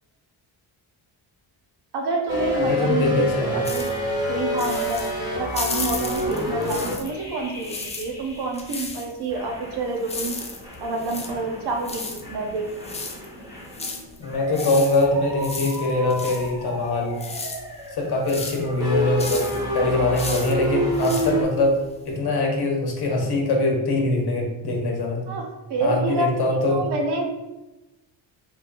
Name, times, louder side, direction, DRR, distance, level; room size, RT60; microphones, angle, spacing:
voice 1, 1.9-3.9 4.3-5.0 5.4-10.4 10.8-12.8 19.5-19.7 25.3-27.3, right 3 dB, 55° right, 2 dB, 0.7 m, -28 dB
sound 1, 2.3-8.8 9.3-21.4, equal, 10° right, 1.3 m, -29 dB
voice 2, 2.6-3.6 14.2-17.2 18.0-19.5 19.7-21.8 22.0-25.2 25.8-26.8, left 2 dB, 55° left, 0 dB, 1.0 m, -23 dB
sound 2, 3.6-7.2 7.5-22.2, left 3 dB, 15° left, 0.3 m, -35 dB
3.7 x 3.2 x 2.5 m, 1.0 s
cardioid pair, 95°, 47 cm